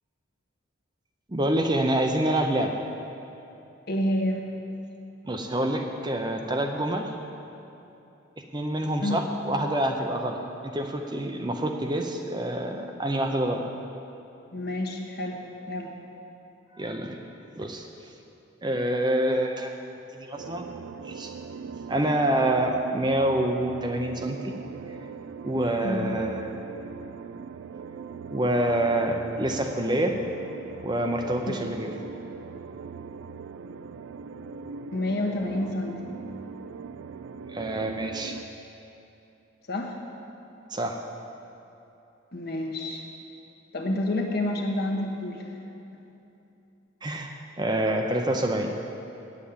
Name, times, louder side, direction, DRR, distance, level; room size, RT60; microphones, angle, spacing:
voice 1, 1.3-2.8 5.3-7.1 8.5-13.6 16.8-17.2 17.6-17.9 18.6-19.7 20.1-20.7 21.0-21.3 21.9-24.5 25.4-26.6 28.3-30.2 30.8-31.9 37.5-38.4 40.7-41.0 47.0-48.7, right 1 dB, 20° right, 3 dB, 0.6 m, -27 dB
voice 2, 3.9-4.5 9.0-9.2 14.5-15.4 15.7-15.9 25.8-26.0 31.5-31.6 34.9-36.1 39.7-40.0 42.3-43.0 43.7-45.5 45.9-46.0, left 1 dB, 50° left, 1 dB, 1.2 m, -29 dB
sound 1, 20.4-38.4, right 5 dB, 70° right, 0.3 m, -40 dB
9.2 x 7.4 x 8.5 m, 2.9 s
head